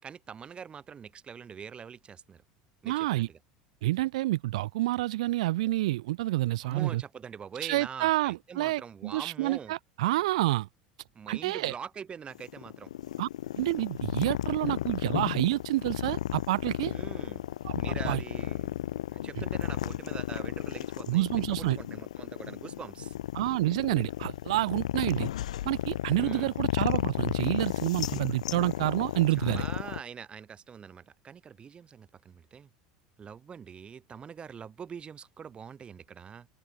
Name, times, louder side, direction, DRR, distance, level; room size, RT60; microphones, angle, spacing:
voice 1, 0.0-2.4 2.8-3.4 6.6-9.7 11.1-12.9 16.9-17.4 17.8-18.8 19.1-23.1 26.2-26.5 28.0-28.4 29.4-32.7 33.2-36.5, right 7 dB, 30° right, 4.7 m, -44 dB
voice 2, 2.9-3.3 3.8-7.0 7.6-10.7 11.3-11.7 13.2-13.3 13.6-16.9 17.6-18.2 19.4-19.5 21.1-21.8 23.3-25.3 25.6-29.6, right 17 dB, 80° right, 0.9 m, -28 dB
sound 1, 12.3-30.0, left 12 dB, 85° left, 0.4 m, -33 dB
hypercardioid pair, 90°, 3 cm